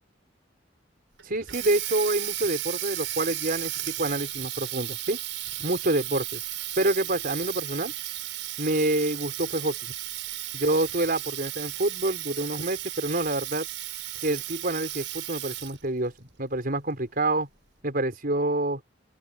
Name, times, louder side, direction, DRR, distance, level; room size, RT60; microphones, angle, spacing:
voice 1, 1.2-5.2 5.6-6.4 6.8-7.9 8.6-9.9 10.5-13.7 14.2-17.5 17.8-18.8, right 1 dB, 50° right, 5.5 m, -27 dB
Water tap faucet, 1.2-15.9, right 14 dB, 80° right, 5.6 m, -34 dB
open air
head